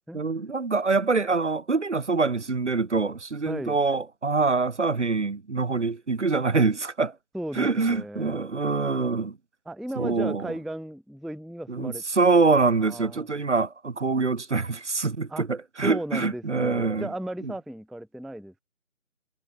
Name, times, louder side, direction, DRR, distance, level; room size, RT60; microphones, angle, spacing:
voice 1, 0.1-7.1 7.6-9.4 10.0-10.5 11.7-17.1, right 4 dB, 60° right, 0.9 m, -25 dB
voice 2, 3.4-3.8 7.3-8.4 9.7-12.0 12.8-13.3 15.3-15.5 15.8-18.6, right 1 dB, ahead, 0.4 m, -35 dB
figure-of-eight pair, 165°, 41 cm